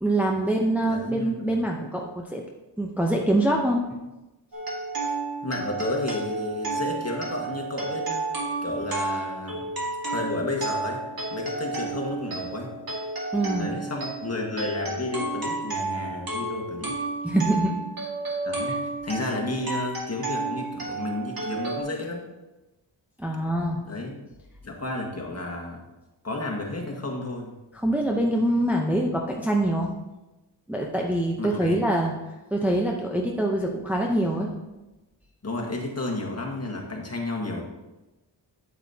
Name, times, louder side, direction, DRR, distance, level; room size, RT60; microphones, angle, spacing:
voice 1, 0.0-2.4 2.8-3.8 13.3-13.7 17.2-17.7 23.2-23.8 27.8-29.9 30.7-32.1 32.5-34.5, right 1 dB, 5° right, 0 dB, 0.7 m, -24 dB
voice 2, 0.8-1.6 5.0-5.1 5.4-9.7 10.0-11.0 11.3-12.7 13.6-16.9 18.4-22.2 23.8-24.1 24.6-25.8 26.2-27.5 31.4-31.8 35.4-37.6, left 2 dB, 30° left, 0 dB, 1.7 m, -32 dB
sound 1, 4.5-21.8, right 3 dB, 50° right, 2.0 m, -32 dB
8.6 x 8.6 x 2.8 m, 1.0 s
wide cardioid pair, 85°, 46 cm